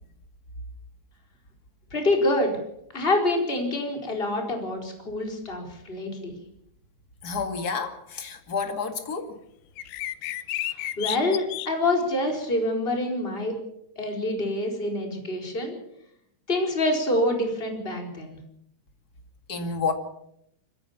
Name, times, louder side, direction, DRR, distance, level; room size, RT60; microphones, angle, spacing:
voice 1, 1.9-2.5 2.9-6.3 10.7-13.6 14.0-15.8 16.5-18.4, left 1 dB, 15° left, 2 dB, 4.3 m, -26 dB
voice 2, 7.2-9.4 19.5-19.9, left 5 dB, 35° left, 6 dB, 1.6 m, -29 dB
sound 1, 9.8-11.7, left 14 dB, 75° left, 2.7 m, -31 dB
25.5 x 15.5 x 7.2 m, 0.74 s
omnidirectional pair, 5.0 m